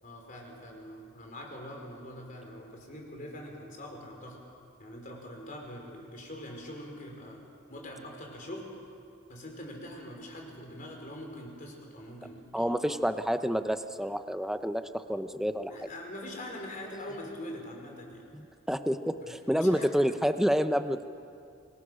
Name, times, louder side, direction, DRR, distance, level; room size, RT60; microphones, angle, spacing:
voice 1, 0.0-4.4 4.8-7.4 7.7-8.7 9.3-12.8 15.7-18.3 19.2-19.9, left 1 dB, 40° left, 1 dB, 4.6 m, -43 dB
voice 2, 12.5-15.7 18.3-21.1, equal, ahead, 9 dB, 0.7 m, -29 dB
28.0 x 22.5 x 6.4 m, 2.4 s
head